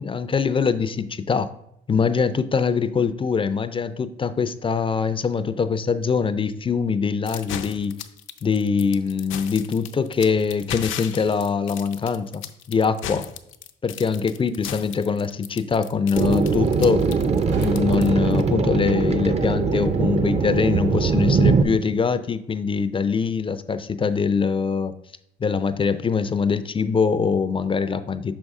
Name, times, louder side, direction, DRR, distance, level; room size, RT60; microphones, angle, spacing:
voice 1, 0.0-1.5 1.9-8.0 8.4-12.4 12.7-13.3 13.8-17.2 17.6-24.9 25.4-28.4, left 5 dB, 25° left, 12 dB, 0.4 m, -23 dB
sound 1, 7.3-18.5, left 10 dB, 85° left, 0.5 m, -36 dB
Thump thud, 15.9-23.4 23.8-24.2, right 4 dB, 65° right, 1.7 m, -43 dB
sound 2, 16.1-21.6, right 5 dB, 30° right, 0.5 m, -21 dB
5.7 x 5.3 x 3.5 m, 0.75 s
cardioid pair, 90°, 20 cm